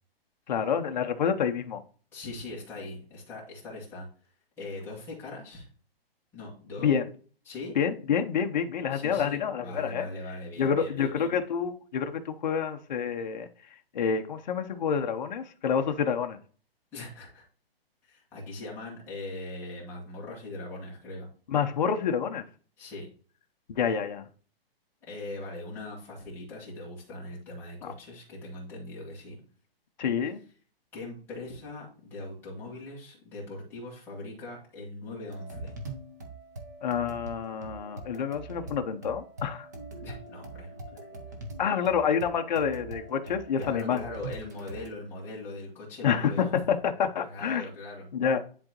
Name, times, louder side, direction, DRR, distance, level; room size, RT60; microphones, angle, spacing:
voice 1, 0.5-1.8 6.8-7.0 7.8-10.1 10.6-13.5 13.9-16.4 21.5-22.5 23.7-24.3 27.8-27.9 30.0-30.4 36.8-39.7 41.6-44.0 46.0-47.7 48.1-48.4, left 7 dB, 45° left, 0.7 m, -28 dB
voice 2, 2.1-4.1 4.6-5.7 6.3-6.9 7.4-7.7 8.9-11.3 16.9-17.4 18.0-21.3 22.8-23.1 25.0-29.4 30.9-35.7 40.0-41.2 43.6-46.5 47.2-48.1, left 2 dB, 5° left, 1.6 m, -40 dB
sound 1, 35.2-44.9, right 2 dB, 20° right, 0.5 m, -43 dB
10.5 x 3.9 x 2.9 m
hypercardioid pair, 175°, 30 cm